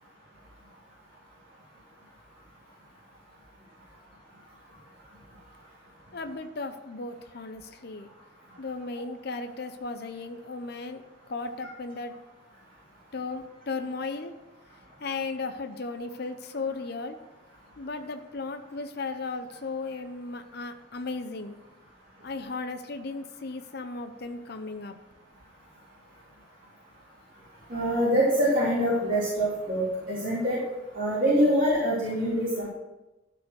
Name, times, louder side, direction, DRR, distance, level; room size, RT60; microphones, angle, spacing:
voice 1, 6.1-8.1 8.6-11.0 11.3-12.1 13.1-14.3 15.0-17.2 17.8-21.6 22.2-25.0, left 3 dB, 55° left, 7 dB, 0.7 m, -35 dB
voice 2, 27.7-30.6 30.9-32.7, equal, 45° right, -8 dB, 3.0 m, -25 dB
13.0 x 4.9 x 6.3 m, 1.0 s
head